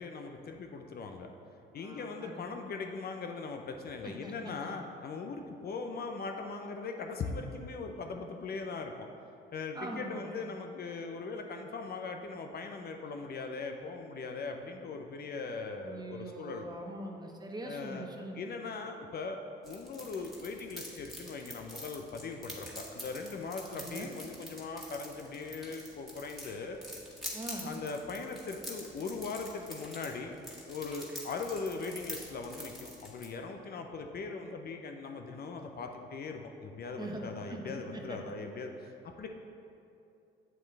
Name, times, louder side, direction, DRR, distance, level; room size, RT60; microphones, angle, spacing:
voice 1, 0.0-1.3 1.7-9.1 9.5-16.7 17.6-18.1 18.3-26.8 27.6-30.3 30.7-39.3, left 4 dB, 50° left, 4 dB, 0.7 m, -40 dB
voice 2, 1.8-2.4 4.0-4.8 9.7-10.4 15.8-18.5 23.7-24.2 27.3-27.8 37.0-38.2, right 1 dB, 20° right, 1 dB, 1.1 m, -43 dB
sound 1, 19.6-33.3, equal, ahead, 1.8 m, -46 dB
7.6 x 7.5 x 3.3 m, 2.6 s
supercardioid pair, 80°, 21 cm